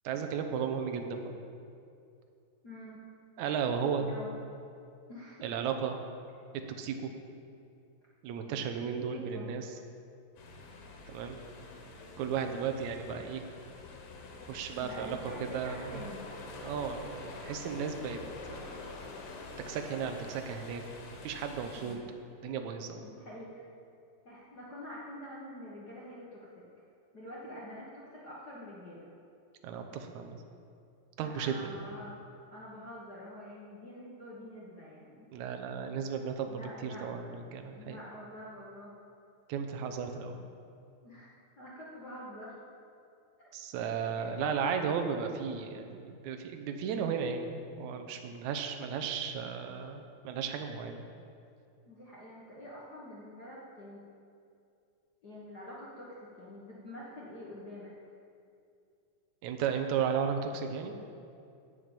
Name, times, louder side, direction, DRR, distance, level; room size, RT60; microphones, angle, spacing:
voice 1, 0.0-1.3 3.4-4.1 5.4-6.0 6.7-7.1 8.2-9.7 11.1-11.4 12.2-13.4 14.5-16.0 16.6-18.2 18.5-19.0 19.7-23.1 29.6-30.4 31.2-31.7 35.3-38.0 39.5-40.4 43.5-51.0 59.4-60.9, right 7 dB, 75° right, 5 dB, 1.8 m, -35 dB
voice 2, 2.6-3.0 4.0-4.3 5.1-5.4 8.5-8.6 8.9-9.5 14.8-16.3 21.6-22.0 23.0-23.7 24.2-26.6 27.1-29.1 31.2-32.2 32.5-35.3 36.4-37.1 37.7-38.9 41.0-41.3 41.6-42.5 43.4-43.5 44.1-44.9 51.9-54.0 55.2-57.9, left 1 dB, 60° left, -6 dB, 1.0 m, -46 dB
sound 1, 10.4-22.0, left 3 dB, 85° left, 3.3 m, -46 dB
13.0 x 5.1 x 8.9 m, 2.5 s
omnidirectional pair, 4.2 m